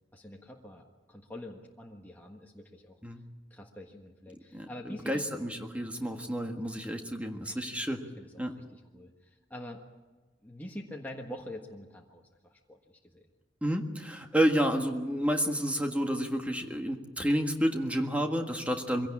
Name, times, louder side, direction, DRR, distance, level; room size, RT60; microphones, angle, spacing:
voice 1, 0.1-3.0 3.5-5.3 7.4-7.9 8.2-9.8 10.4-13.2, left 1 dB, 10° left, -1 dB, 1.5 m, -45 dB
voice 2, 4.5-8.0 8.4-8.5 13.6-19.1, equal, 5° right, 3 dB, 1.6 m, -30 dB
23.5 x 17.0 x 8.6 m, 1.3 s
head